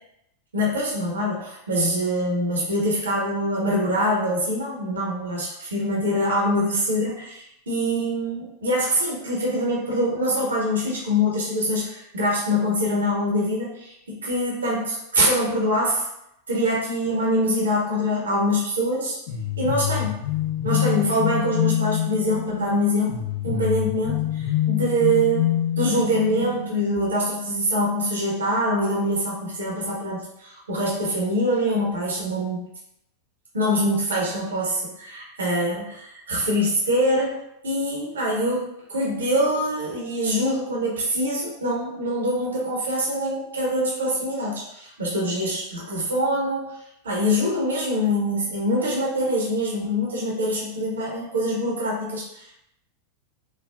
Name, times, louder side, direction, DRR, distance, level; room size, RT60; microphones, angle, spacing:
voice 1, 0.5-16.0 16.5-19.2 19.6-20.2 20.6-25.5 25.8-32.7 33.5-46.7 47.0-52.5, equal, 70° right, -3 dB, 0.8 m, -24 dB
sound 1, 19.3-26.9, left 10 dB, 50° left, 1.0 m, -26 dB
3.2 x 2.1 x 2.2 m, 0.81 s
figure-of-eight pair, 90°, 0 cm